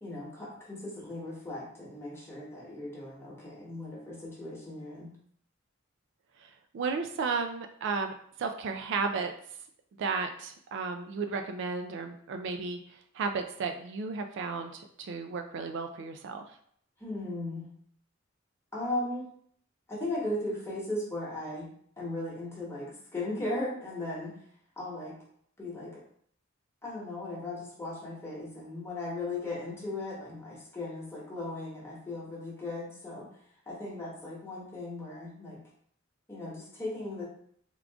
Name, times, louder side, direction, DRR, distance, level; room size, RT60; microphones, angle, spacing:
voice 1, 0.0-5.1 17.0-17.7 18.7-19.3 19.9-21.7 22.0-24.3 24.8-25.2 25.6-26.0 26.8-33.3 33.7-35.6 36.3-37.2, left 2 dB, 15° left, -4 dB, 1.0 m, -37 dB
voice 2, 6.7-8.1 8.4-9.3 10.0-12.8 13.1-16.4, right 4 dB, 65° right, 6 dB, 0.3 m, -33 dB
3.6 x 2.4 x 3.4 m, 0.62 s
head